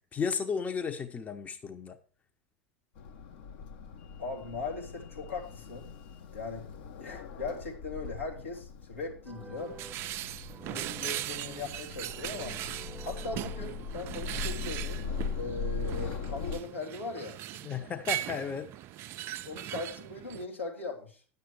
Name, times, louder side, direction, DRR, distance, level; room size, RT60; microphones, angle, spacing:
voice 1, 0.1-2.0 17.6-18.7, left 6 dB, 20° left, 0.8 m, -34 dB
sound 1, 3.0-16.6, left 5 dB, 60° left, 1.1 m, -40 dB
voice 2, 4.2-5.9 6.3-9.8 10.6-12.6 13.0-15.0 15.3-17.4 19.4-21.2, left 3 dB, 85° left, 2.7 m, -39 dB
sound 2, 9.2-14.2, right 2 dB, 10° right, 0.8 m, -50 dB
sound 3, 9.6-20.5, right 14 dB, 40° right, 0.4 m, -39 dB
10.0 x 6.9 x 4.8 m
figure-of-eight pair, 85°, 7 cm